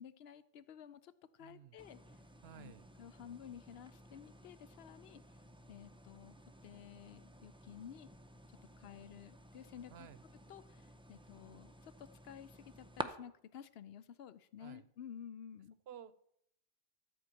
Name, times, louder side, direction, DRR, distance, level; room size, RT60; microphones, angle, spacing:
voice 1, 0.0-2.2 2.5-5.2 5.7-6.3 6.6-8.1 8.6-10.1 10.5-15.8, left 9 dB, 70° left, 14 dB, 0.8 m, -53 dB
voice 2, 1.4-1.8 2.4-2.9 9.9-10.2 14.6-14.9 15.9-16.1, right 10 dB, 70° right, 15 dB, 0.9 m, -53 dB
sound 1, 1.8-13.0, right 1 dB, 10° right, 0.3 m, -52 dB
13.5 x 4.6 x 8.2 m, 0.74 s
omnidirectional pair, 1.1 m